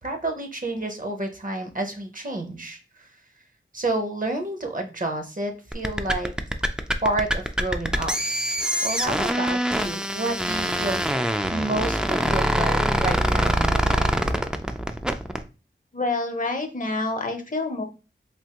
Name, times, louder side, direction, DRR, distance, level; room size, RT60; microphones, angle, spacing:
voice 1, 0.0-3.1 3.7-6.3 7.0-8.1 8.8-11.2 11.5-14.1, right 2 dB, 40° right, 4 dB, 0.7 m, -29 dB
sound 1, 5.7-15.4, equal, 5° right, 0.3 m, -24 dB
voice 2, 15.9-17.8, left 2 dB, 40° left, 5 dB, 0.6 m, -27 dB
3.4 x 2.7 x 2.9 m, 0.32 s
wide cardioid pair, 45°, 21 cm